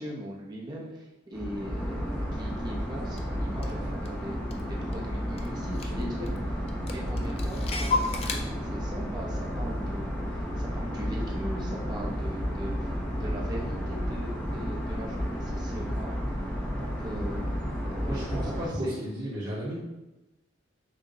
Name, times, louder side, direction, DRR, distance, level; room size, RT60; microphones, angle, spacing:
voice 1, 0.0-4.4 4.7-12.9 13.2-16.2 16.8-17.5 17.8-18.5 18.8-18.9, equal, 25° right, -2 dB, 0.7 m, -40 dB
sound 1, 1.3-18.7, equal, 10° left, 0.7 m, -32 dB
Clock, 3.2-3.3 3.6-5.1 5.4-5.5 5.7-6.4 6.7-8.4, left 3 dB, 35° left, 0.3 m, -32 dB
voice 2, 18.0-19.7, right 1 dB, 55° right, -14 dB, 1.5 m, -34 dB
6.1 x 2.1 x 2.8 m, 1.0 s
head